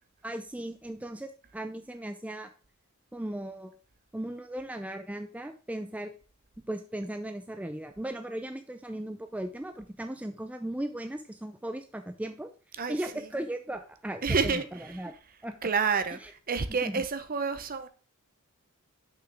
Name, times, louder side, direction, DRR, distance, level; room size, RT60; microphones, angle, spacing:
voice 1, 0.2-2.5 3.1-3.7 4.1-6.1 6.7-12.5 12.9-15.1 15.4-15.6 16.1-16.3 16.8-17.0, right 1 dB, 5° right, 0.4 m, -37 dB
voice 2, 14.2-14.7 15.6-16.2 16.5-17.9, right 5 dB, 40° right, 0.7 m, -28 dB
6.1 x 5.7 x 3.3 m
head